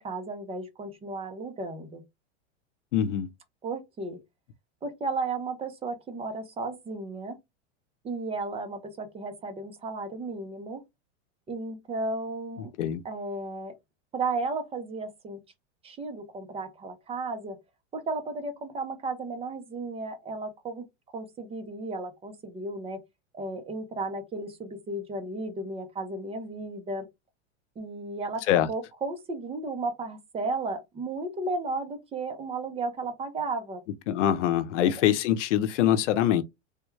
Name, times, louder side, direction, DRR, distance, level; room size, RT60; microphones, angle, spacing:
voice 1, 0.0-2.0 3.6-4.2 4.8-7.4 8.0-10.8 11.5-12.7 13.0-13.7 14.1-15.4 15.8-17.6 17.9-20.8 21.1-23.0 23.3-27.1 27.8-33.8 34.8-35.1, right 3 dB, 15° right, 0.6 m, -34 dB
voice 2, 2.9-3.3 12.8-13.0 28.5-28.7 34.1-36.4, left 11 dB, 90° left, 0.6 m, -24 dB
3.5 x 2.2 x 3.1 m
supercardioid pair, 140°, 35 cm